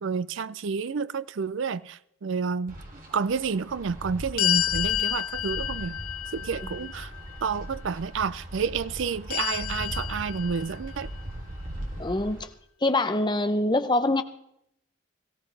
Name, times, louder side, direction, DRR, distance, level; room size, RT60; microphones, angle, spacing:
voice 1, 0.0-2.8 3.1-6.0 6.3-7.1 7.4-11.1, right 5 dB, 60° right, 0.4 m, -30 dB
Wind, 2.7-12.4, equal, 40° right, 3.0 m, -39 dB
sound 1, 4.4-7.5 9.3-11.1, left 13 dB, 80° left, 0.4 m, -30 dB
voice 2, 12.0-12.5 12.8-14.2, left 2 dB, 20° left, 0.6 m, -24 dB
18.0 x 15.0 x 3.3 m
head